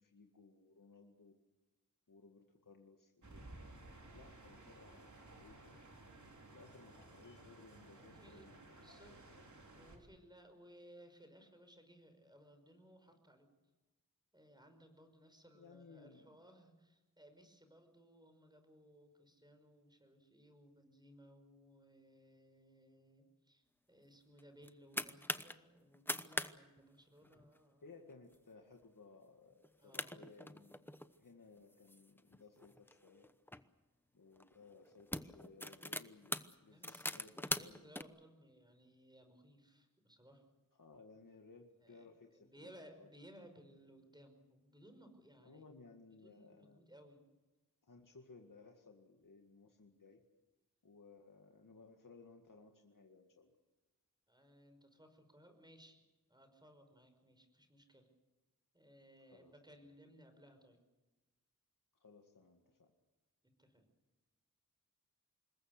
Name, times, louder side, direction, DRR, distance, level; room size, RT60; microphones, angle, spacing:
voice 1, 0.0-1.3 2.1-5.8 6.5-9.4 15.5-16.3 27.8-30.9 31.2-33.3 34.1-36.3 36.6-37.9 40.7-43.1 45.4-46.8 47.8-50.2 50.8-53.6 59.3-59.8 61.9-62.9, left 4 dB, 70° left, 2 dB, 2.1 m, -60 dB
sound 1, 3.2-10.0, right 2 dB, 60° right, 4.2 m, -57 dB
voice 2, 8.0-8.5 8.8-9.1 9.7-13.5 14.3-27.9 29.8-30.2 36.7-40.4 41.8-42.1 42.3-45.6 46.2-47.3 54.3-56.0 56.3-58.1 58.7-60.8 63.4-63.9, equal, 15° right, 6 dB, 5.5 m, -62 dB
sound 2, 24.4-25.5 25.9-26.5 26.8-26.9 27.2-27.6 28.1-28.4 28.8-28.9 29.6-29.7 29.9-31.1 31.7-33.6 34.4-34.5 34.9-38.0, left 1 dB, 5° left, 0.9 m, -42 dB
26.5 x 21.0 x 6.7 m, 1.1 s
wide cardioid pair, 80°, 33 cm